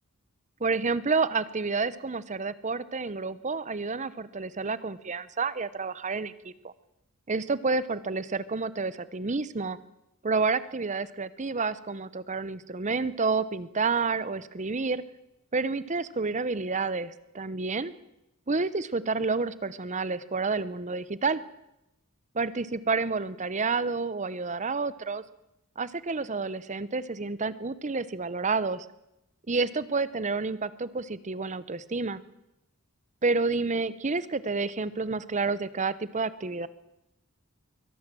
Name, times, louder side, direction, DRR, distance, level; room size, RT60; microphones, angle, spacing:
voice 1, 0.6-6.7 7.3-9.8 10.2-15.0 15.5-17.9 18.5-21.4 22.3-25.2 25.8-28.9 29.5-32.2 33.2-36.7, right 4 dB, 35° right, 17 dB, 0.8 m, -29 dB
23.5 x 17.0 x 7.6 m, 0.88 s
head